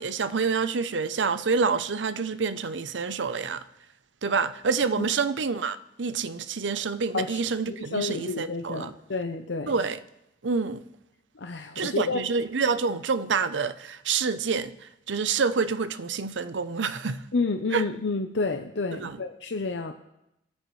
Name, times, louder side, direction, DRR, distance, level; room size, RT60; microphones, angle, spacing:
voice 1, 0.0-3.6 4.2-8.9 9.7-10.0 10.4-10.8 11.8-14.7 15.1-17.2 17.7-17.8 18.9-19.2, right 5 dB, 85° right, 0.7 m, -27 dB
voice 2, 7.7-9.7 11.4-12.2 17.3-19.9, left 3 dB, 75° left, 0.7 m, -30 dB
24.0 x 9.2 x 3.2 m
head